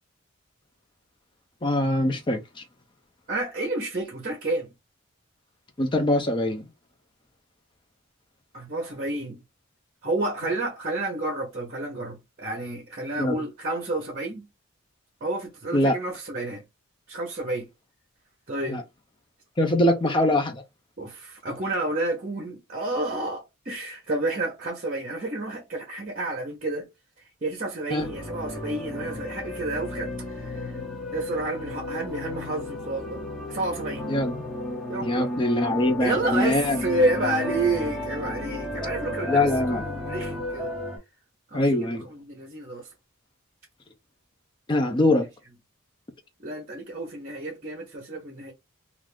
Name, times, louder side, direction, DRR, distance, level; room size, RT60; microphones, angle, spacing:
voice 1, 1.6-2.4 5.8-6.6 13.2-13.4 15.7-16.0 18.7-18.8 19.6-20.6 27.9-28.1 34.1-34.4 35.0-36.8 39.3-39.8 41.5-42.0 44.7-45.2, left 1 dB, 20° left, 0.4 m, -23 dB
voice 2, 3.3-4.7 8.5-9.4 10.0-14.5 15.2-16.6 17.1-17.7 18.5-18.8 21.0-26.9 27.4-30.8 31.1-33.2 33.5-34.1 34.9-35.3 36.0-40.7 41.5-42.9 46.4-48.5, right 2 dB, 35° right, 0.7 m, -30 dB
sound 1, 28.0-41.0, left 2 dB, 5° left, 1.1 m, -33 dB
2.4 x 2.4 x 3.5 m
head